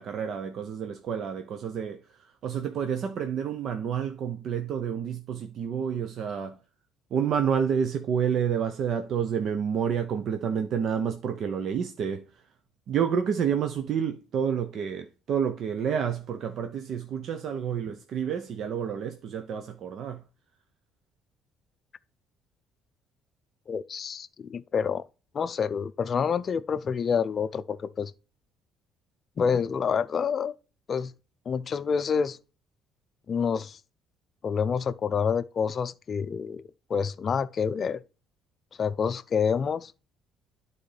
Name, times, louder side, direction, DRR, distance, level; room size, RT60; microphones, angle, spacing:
voice 1, 0.0-6.6 7.1-12.5 12.9-20.2, right 7 dB, 55° right, 0.7 m, -29 dB
voice 2, 23.7-25.1 25.3-28.1 29.4-30.5 30.9-31.1 31.5-32.4 33.3-33.8 34.4-36.6 36.9-38.0 38.8-39.9, left 6 dB, 35° left, 0.5 m, -27 dB
11.5 x 4.1 x 3.4 m
cardioid pair, 125°, 0 cm